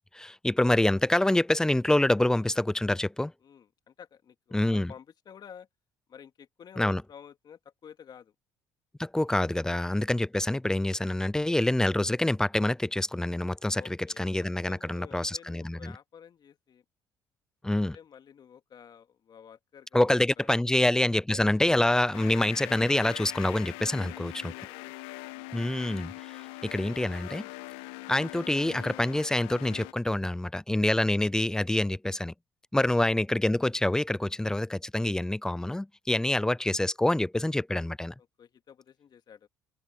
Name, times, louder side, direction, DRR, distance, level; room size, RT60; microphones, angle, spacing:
voice 1, 0.0-3.3 4.5-4.9 6.8-7.0 9.0-15.9 17.6-18.0 19.9-24.5 25.5-27.5 28.1-32.3 32.7-38.1, left 1 dB, 5° left, 0.3 m, -26 dB
voice 2, 3.4-5.7 6.1-8.3 9.6-9.7 13.7-14.2 14.7-16.8 17.9-20.0 20.4-20.5 24.0-24.9 25.2-25.7 26.4-26.6 32.8-32.9 36.1-36.3 38.2-39.5, left 8 dB, 50° left, 2.1 m, -51 dB
sound 1, 22.1-29.9, left 21 dB, 80° left, 1.4 m, -42 dB
open air
hypercardioid pair, 60°, 9 cm